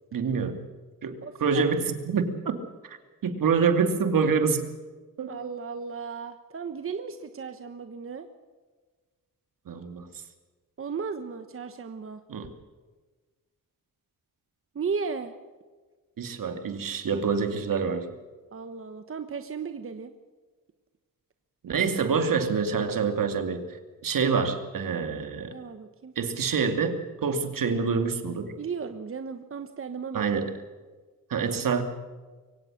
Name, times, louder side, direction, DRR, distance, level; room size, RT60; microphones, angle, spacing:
voice 1, 0.1-0.6 1.0-2.6 2.8-3.0 3.2-4.6 5.2-5.3 9.7-10.1 12.3-12.5 16.2-18.1 21.6-25.5 26.2-28.5 30.1-30.5 31.3-31.8, right 5 dB, 70° right, 7 dB, 2.6 m, -26 dB
voice 2, 1.2-1.7 5.3-8.3 10.8-12.2 14.7-15.3 18.5-20.1 25.5-26.1 28.6-30.3, right 5 dB, 40° right, 8 dB, 1.2 m, -35 dB
23.5 x 17.5 x 6.5 m, 1.3 s
wide cardioid pair, 145°, 34 cm